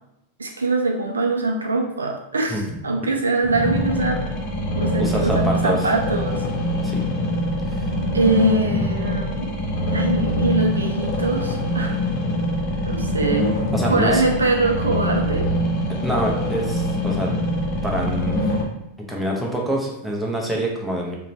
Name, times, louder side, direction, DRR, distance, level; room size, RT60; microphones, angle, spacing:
voice 1, 0.4-4.2 4.7-6.5 7.8-9.6 9.9-12.0 12.8-13.5 13.9-15.5, right 2 dB, 75° right, 3 dB, 0.3 m, -23 dB
sound 1, 3.4-18.6, equal, 40° left, 0.6 m, -24 dB
voice 2, 5.0-5.9 6.8-7.0 7.7-7.8 13.7-14.2 16.0-17.3 17.8-18.4 19.0-21.2, right 1 dB, 5° right, -2 dB, 0.6 m, -26 dB
2.8 x 2.1 x 2.7 m, 0.84 s
figure-of-eight pair, 90°, 0 cm